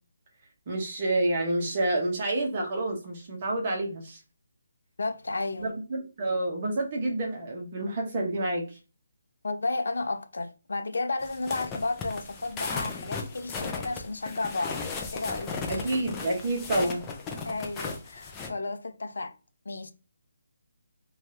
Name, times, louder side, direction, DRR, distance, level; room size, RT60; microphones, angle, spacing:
voice 1, 0.7-4.2 5.6-8.8 15.7-17.0, right 2 dB, 25° right, 0.7 m, -28 dB
voice 2, 5.0-5.8 9.4-14.9 15.1-15.9 17.4-19.4 19.7-19.9, left 3 dB, 80° left, 0.4 m, -33 dB
sound 1, 11.2-18.5, left 4 dB, 10° left, 0.3 m, -36 dB
2.7 x 2.3 x 3.2 m
hypercardioid pair, 175°, 0 cm